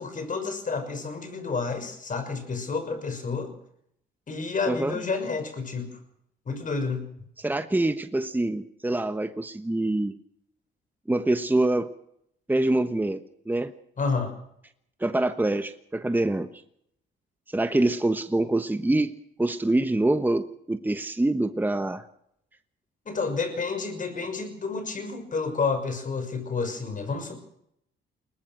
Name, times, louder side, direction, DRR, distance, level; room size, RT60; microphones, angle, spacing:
voice 1, 0.0-3.5 4.3-5.9 6.5-7.1 14.0-14.3 23.1-27.4, left 4 dB, 40° left, 8 dB, 6.2 m, -30 dB
voice 2, 4.7-5.0 7.4-10.1 11.1-11.9 12.5-13.2 13.5-13.7 15.0-16.5 17.5-19.1 19.4-22.0, right 2 dB, 10° right, 10 dB, 1.2 m, -25 dB
22.0 x 19.0 x 6.2 m, 0.73 s
cardioid pair, 90°, 20 cm